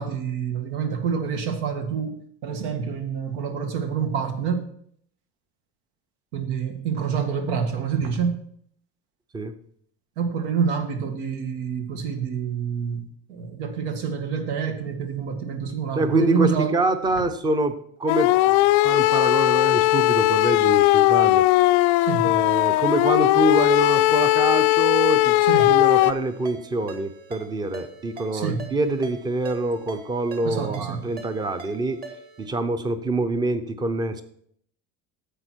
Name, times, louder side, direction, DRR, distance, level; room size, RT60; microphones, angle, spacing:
voice 1, 0.0-2.2 2.4-4.7 6.3-8.4 10.2-16.7 22.0-22.3 25.4-25.7 28.3-28.7 30.4-31.1, right 6 dB, 85° right, 6 dB, 2.0 m, -27 dB
voice 2, 16.0-21.5 22.2-25.4 25.7-32.0 32.4-34.2, right 2 dB, 15° right, 11 dB, 0.6 m, -25 dB
sound 1, 18.1-26.1, left 17 dB, 80° left, 0.6 m, -18 dB
Ringtone, 25.6-32.5, right 3 dB, 30° right, 1.8 m, -43 dB
11.0 x 8.0 x 4.5 m, 0.65 s
cardioid pair, 175°, 33 cm